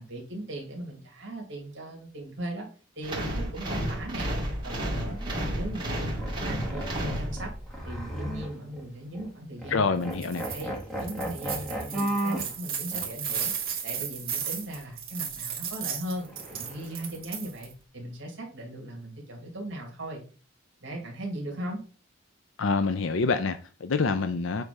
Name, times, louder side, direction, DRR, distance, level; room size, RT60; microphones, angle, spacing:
voice 1, 0.0-2.7 3.0-4.3 4.6-5.2 5.5-7.5 7.8-10.1 10.5-10.7 11.0-13.5 13.8-20.2 20.8-21.8, right 1 dB, 60° right, 2.4 m, -38 dB
sound 1, 3.0-7.8, equal, 25° right, 2.3 m, -31 dB
sound 2, 5.1-5.3 5.9-8.8 9.1-9.3 9.6-9.8 10.0-12.5 12.9-13.0 16.2-17.2, right 1 dB, ahead, 1.9 m, -35 dB
voice 2, 9.7-10.5 22.6-24.6, left 4 dB, 70° left, 0.5 m, -26 dB
sound 3, 10.1-10.6 11.0-17.7, right 8 dB, 45° right, 2.3 m, -34 dB
8.1 x 3.4 x 5.4 m
head